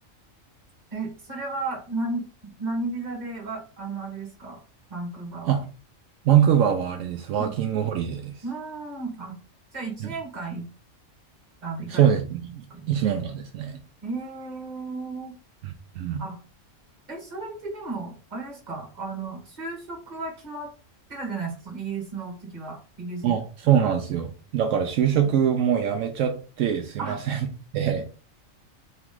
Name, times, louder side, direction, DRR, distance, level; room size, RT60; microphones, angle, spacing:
voice 1, 0.9-4.6 4.9-5.6 7.4-7.5 8.4-9.3 9.7-10.6 11.6-12.1 12.7-12.9 14.0-15.4 16.2-16.4 17.1-20.7 21.1-23.3 23.8-23.9 27.0-27.2, right 3 dB, 35° right, 0 dB, 1.6 m, -34 dB
voice 2, 6.2-8.3 10.0-10.1 11.9-13.8 15.6-16.2 23.2-27.4 27.7-28.1, right 9 dB, 75° right, 4 dB, 1.0 m, -23 dB
4.2 x 3.0 x 3.6 m, 0.37 s
omnidirectional pair, 1.4 m